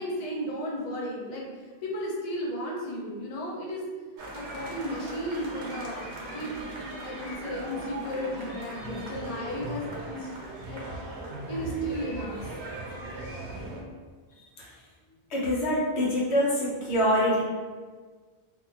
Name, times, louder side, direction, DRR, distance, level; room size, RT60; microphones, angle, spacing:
voice 1, 0.0-1.5 1.8-3.9 4.3-6.5 7.0-10.3 10.7-10.9 11.5-12.5, equal, 45° left, -3 dB, 0.5 m, -34 dB
sound 1, 4.2-13.8, right 2 dB, 85° right, 0.9 m, -39 dB
voice 2, 15.3-17.4, equal, 85° left, -6 dB, 1.1 m, -25 dB
2.6 x 2.5 x 2.7 m, 1.5 s
omnidirectional pair, 1.1 m